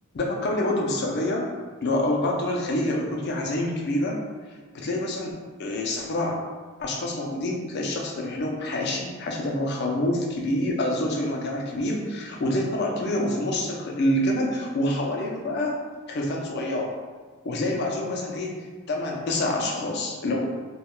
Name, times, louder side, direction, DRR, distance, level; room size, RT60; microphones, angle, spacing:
voice 1, 0.1-1.5 1.8-4.2 4.7-5.3 5.6-6.4 6.8-15.8 16.1-16.9 17.4-18.6 18.9-20.4, left 1 dB, 50° left, 0 dB, 0.4 m, -27 dB
2.2 x 2.1 x 2.9 m, 1.4 s
head